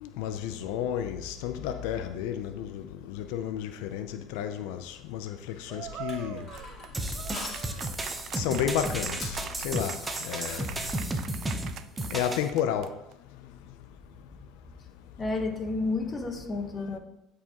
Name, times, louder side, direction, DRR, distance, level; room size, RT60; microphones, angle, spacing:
voice 1, 0.0-6.4 8.3-9.4 9.6-10.0 10.2-10.7 12.1-12.9, left 9 dB, 80° left, 0.5 m, -32 dB
sound 1, 5.7-13.1, right 10 dB, 55° right, 0.4 m, -43 dB
Crushing, 5.8-11.0, left 2 dB, 50° left, 2.4 m, -44 dB
sound 2, 6.9-12.5, right 1 dB, 15° right, 0.8 m, -33 dB
voice 2, 15.2-17.0, left 3 dB, 25° left, 1.1 m, -31 dB
10.5 x 4.8 x 2.9 m
supercardioid pair, 100°, 0 cm